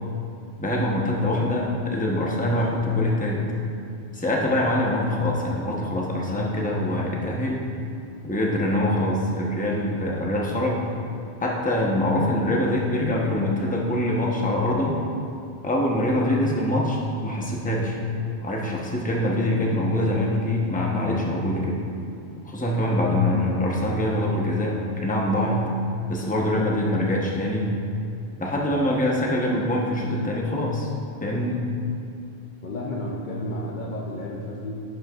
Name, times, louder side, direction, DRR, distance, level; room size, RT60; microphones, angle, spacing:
voice 1, 0.6-3.4 4.1-7.6 8.2-10.8 11.4-15.0 15.6-18.0 18.4-21.8 22.4-25.7 26.1-27.7 28.4-30.9 31.2-31.6, left 1 dB, 10° left, -2 dB, 0.7 m, -24 dB
voice 2, 32.6-34.8, left 1 dB, 55° left, -3 dB, 0.7 m, -32 dB
10.5 x 6.4 x 2.4 m, 2.6 s
omnidirectional pair, 1.1 m